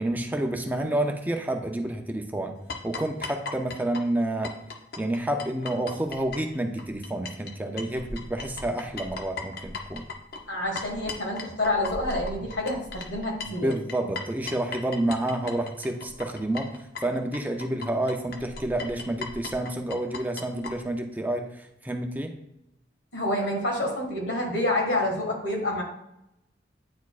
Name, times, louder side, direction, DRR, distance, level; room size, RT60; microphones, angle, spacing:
voice 1, 0.0-2.5 2.8-4.6 5.0-10.0 12.4-12.5 13.5-22.3, right 1 dB, 10° right, 4 dB, 0.5 m, -29 dB
sound 1, 2.7-7.5 7.8-20.7, left 3 dB, 60° left, 0.8 m, -38 dB
voice 2, 10.5-13.7 23.1-25.8, left 1 dB, 80° left, 0 dB, 1.8 m, -28 dB
9.4 x 4.2 x 2.4 m, 0.84 s
head